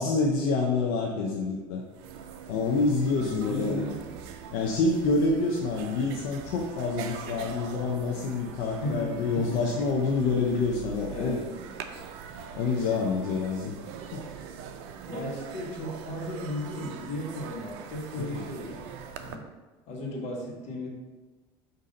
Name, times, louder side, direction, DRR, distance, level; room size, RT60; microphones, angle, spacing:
voice 1, 0.0-1.8 2.5-3.8 4.5-11.4 12.5-13.7 14.1-14.2, left 3 dB, 80° left, -1 dB, 0.6 m, -27 dB
sound 1, 1.6-1.7 1.9-19.4, right 7 dB, 80° right, 0.4 m, -42 dB
voice 2, 3.2-4.1 8.8-9.6 10.5-10.6 11.1-11.5 15.1-19.4 19.9-20.9, left 1 dB, 65° left, -1 dB, 1.3 m, -35 dB
5.2 x 2.7 x 3.8 m, 1.2 s
supercardioid pair, 100°, 13 cm